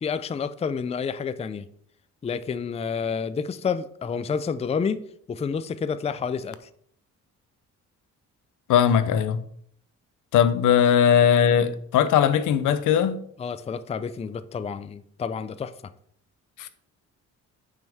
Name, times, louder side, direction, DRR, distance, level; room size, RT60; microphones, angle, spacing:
voice 1, 0.0-1.7 2.2-5.0 5.3-6.7 13.4-15.7, left 6 dB, 20° left, 0.4 m, -29 dB
voice 2, 8.7-9.4 10.3-13.2 16.6-16.7, left 8 dB, 80° left, 0.7 m, -19 dB
9.2 x 5.4 x 3.5 m
cardioid pair, 90°, 30 cm